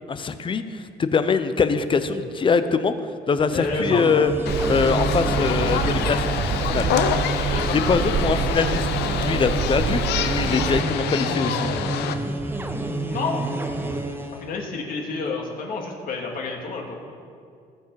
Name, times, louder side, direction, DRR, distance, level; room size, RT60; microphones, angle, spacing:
voice 1, 0.1-2.9 3.3-4.3 4.7-6.2 6.6-6.9 7.7-11.7, left 5 dB, 30° left, 11 dB, 0.7 m, -23 dB
sound 1, 3.4-14.5, right 2 dB, 15° right, 1.0 m, -29 dB
voice 2, 3.5-4.0 5.5-5.9 7.5-7.8 13.1-13.4 14.4-16.9, left 4 dB, 55° left, 0 dB, 2.3 m, -29 dB
sound 2, 4.5-12.2, left 9 dB, 80° left, 0.8 m, -27 dB
Hammer, 4.5-10.8, right 8 dB, 35° right, 0.5 m, -28 dB
19.0 x 7.2 x 4.8 m, 2.3 s
cardioid pair, 110°, 17 cm